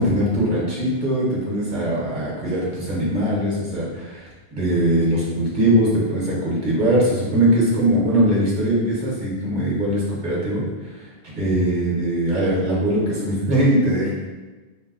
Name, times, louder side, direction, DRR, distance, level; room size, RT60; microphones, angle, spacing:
voice 1, 0.0-11.1 11.4-14.1, right 1 dB, 50° right, -6 dB, 0.9 m, -21 dB
2.6 x 2.1 x 3.5 m, 1.2 s
omnidirectional pair, 1.1 m